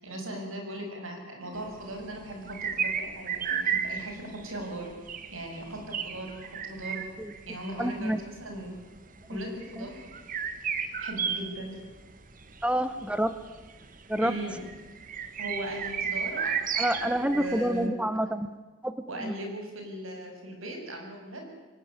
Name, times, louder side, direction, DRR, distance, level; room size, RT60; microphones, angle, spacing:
voice 1, 0.0-4.9 5.3-6.3 6.6-7.0 7.5-8.8 9.3-10.0 11.0-11.8 14.2-14.6 15.4-17.9 19.1-21.4, right 1 dB, 85° right, 3 dB, 6.9 m, -38 dB
sound 1, 1.5-17.8, right 7 dB, 40° right, 1.6 m, -34 dB
voice 2, 7.8-8.2 9.8-9.9 12.6-13.3 14.1-14.3 16.8-18.5 18.8-18.9 19.2-19.3, right 1 dB, 5° right, 12 dB, 0.8 m, -28 dB
24.0 x 18.5 x 9.9 m, 1.3 s
head